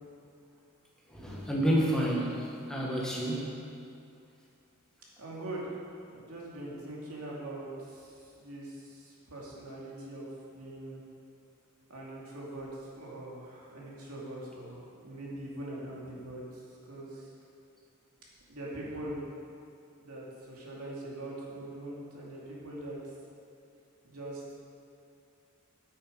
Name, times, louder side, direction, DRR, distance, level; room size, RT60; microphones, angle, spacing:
voice 1, 1.1-3.5, equal, 5° left, -4 dB, 1.4 m, -29 dB
voice 2, 5.2-5.7 6.1-11.0 11.9-16.4 16.9-17.2 18.5-19.2 20.0-23.0 24.0-24.4, right 1 dB, 90° right, -5 dB, 2.5 m, -42 dB
9.1 x 8.7 x 5.2 m, 2.6 s
head